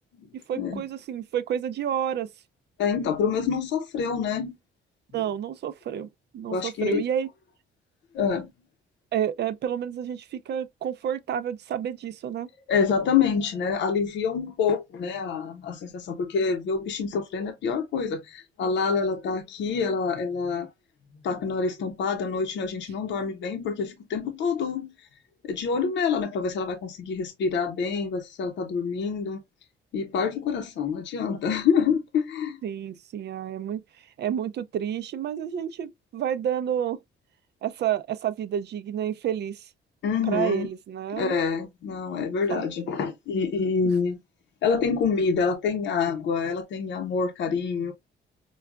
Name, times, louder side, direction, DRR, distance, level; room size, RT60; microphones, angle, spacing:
voice 1, 0.3-2.3 5.1-6.1 6.3-7.3 9.1-12.5 32.6-37.0 37.6-39.7 40.2-41.4 42.5-42.7, right 9 dB, 60° right, 0.5 m, -30 dB
voice 2, 2.8-4.6 6.5-7.0 8.1-8.5 12.7-20.7 21.2-24.9 25.4-29.4 29.9-32.6 40.0-40.7 41.1-44.2 44.6-47.9, left 5 dB, 70° left, 0.7 m, -26 dB
4.7 x 2.2 x 2.3 m
cardioid pair, 90°, 20 cm